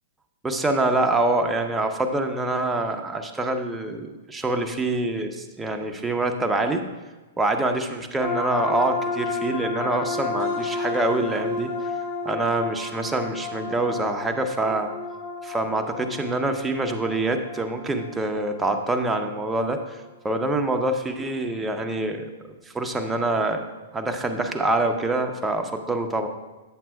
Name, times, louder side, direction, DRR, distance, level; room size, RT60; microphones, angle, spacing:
voice 1, 0.4-6.8 7.4-11.7 12.2-14.9 15.4-23.6 23.9-26.3, right 2 dB, 10° right, 4 dB, 0.6 m, -25 dB
sound 1, 8.2-19.6, left 4 dB, 30° left, 2.0 m, -32 dB
8.7 x 7.2 x 2.3 m, 1.2 s
hypercardioid pair, 125°, 0 cm